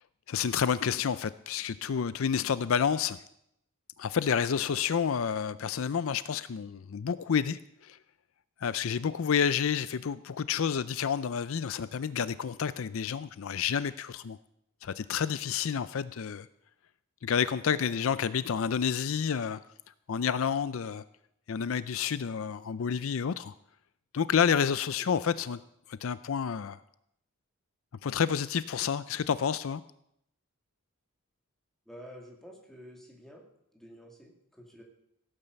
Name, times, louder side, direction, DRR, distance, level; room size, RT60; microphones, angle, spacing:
voice 1, 0.3-3.2 4.0-8.0 8.6-14.4 14.8-16.5 17.2-19.6 20.1-21.0 21.5-23.5 24.1-25.6 25.9-26.8 28.0-29.8, left 7 dB, 65° left, 15 dB, 0.4 m, -29 dB
voice 2, 4.5-4.8 17.7-18.0 25.0-25.5 31.9-33.5 33.7-34.8, equal, ahead, 0 dB, 2.6 m, -51 dB
16.0 x 8.9 x 6.8 m, 0.77 s
head